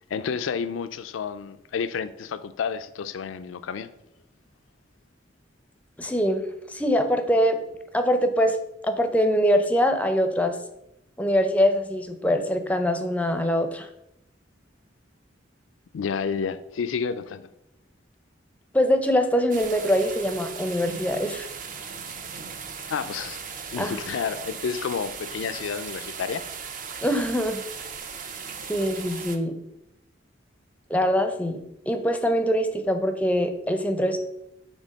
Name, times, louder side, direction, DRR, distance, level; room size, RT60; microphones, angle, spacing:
voice 1, 0.1-3.9 15.9-17.5 22.9-23.4 23.7-26.4, left 6 dB, 90° left, 0.4 m, -30 dB
voice 2, 6.0-7.6 7.9-8.6 8.8-10.6 11.2-13.9 18.7-21.5 23.8-24.0 27.0-27.6 28.7-29.6 30.9-34.2, equal, 10° left, 0.5 m, -23 dB
sound 1, 19.5-29.4, right 6 dB, 45° right, 0.5 m, -38 dB
6.2 x 3.4 x 5.2 m
head